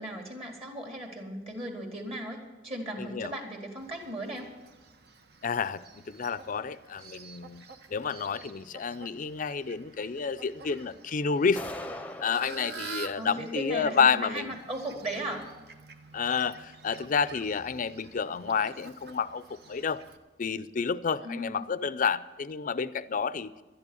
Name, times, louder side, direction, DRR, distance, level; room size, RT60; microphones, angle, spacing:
voice 1, 0.0-4.5 13.2-15.5 21.2-21.7, right 1 dB, 35° right, 1 dB, 2.1 m, -37 dB
voice 2, 3.0-3.3 5.4-5.8 6.1-7.6 7.9-11.7 12.2-14.5 16.1-20.0 20.4-23.5, left 6 dB, 45° left, 16 dB, 0.4 m, -29 dB
Fowl, 3.8-20.2, right 5 dB, 60° right, 1.0 m, -48 dB
sound 1, 11.6-12.6, left 1 dB, 10° left, 0.7 m, -39 dB
11.5 x 11.0 x 7.0 m, 1.1 s
head